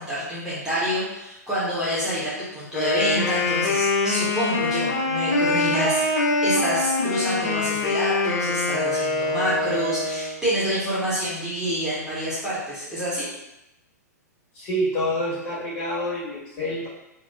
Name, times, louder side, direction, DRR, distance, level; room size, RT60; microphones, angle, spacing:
voice 1, 0.0-6.0 6.4-13.3, equal, 5° right, -11 dB, 0.7 m, -27 dB
Wind instrument woodwind instrument, 2.7-10.4, left 3 dB, 65° left, 0.5 m, -24 dB
voice 2, 14.5-16.9, equal, 30° left, -8 dB, 1.3 m, -27 dB
2.8 x 2.0 x 2.2 m, 0.90 s
figure-of-eight pair, 105°, 9 cm